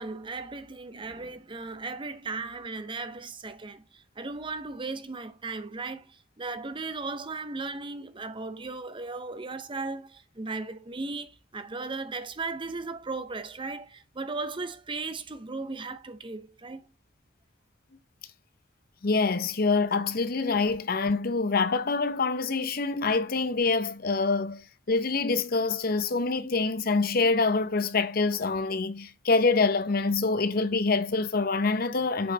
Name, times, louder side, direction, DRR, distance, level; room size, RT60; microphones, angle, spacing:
voice 1, 0.0-16.9, right 3 dB, 25° right, 0.7 m, -36 dB
voice 2, 19.0-24.6 24.9-32.3, left 4 dB, 50° left, 0.7 m, -25 dB
7.9 x 5.6 x 3.9 m
head